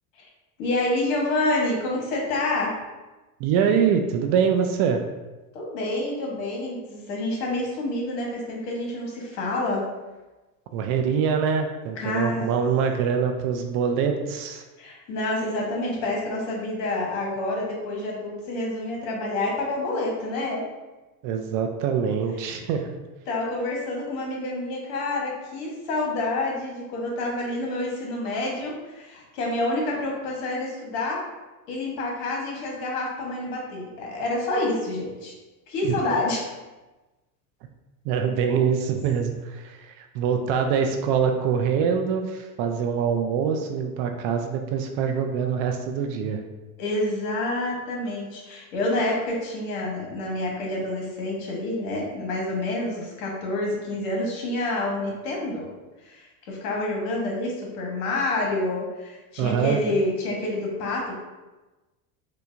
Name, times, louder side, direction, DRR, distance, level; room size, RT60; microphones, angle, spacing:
voice 1, 0.6-2.7 5.5-9.8 12.0-12.5 14.8-20.6 23.3-31.2 31.7-35.3 35.7-36.5 46.8-55.7 56.0-61.2, left 2 dB, 65° left, -2 dB, 1.2 m, -28 dB
voice 2, 3.4-5.0 10.7-14.6 21.2-23.0 35.8-35.9 38.0-46.4 59.4-59.8, right 7 dB, 50° right, 4 dB, 0.4 m, -24 dB
4.5 x 2.2 x 2.5 m, 1.1 s
supercardioid pair, 110°, 44 cm